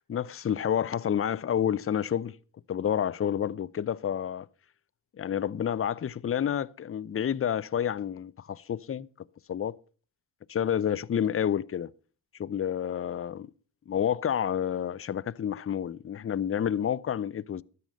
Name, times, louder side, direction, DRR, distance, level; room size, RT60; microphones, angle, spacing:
voice 1, 0.1-2.4 2.7-4.5 5.2-9.1 9.5-9.8 10.5-11.9 12.4-13.5 13.9-17.6, left 9 dB, 30° left, 0.5 m, -29 dB
13.0 x 9.6 x 5.3 m
supercardioid pair, 55°, 46 cm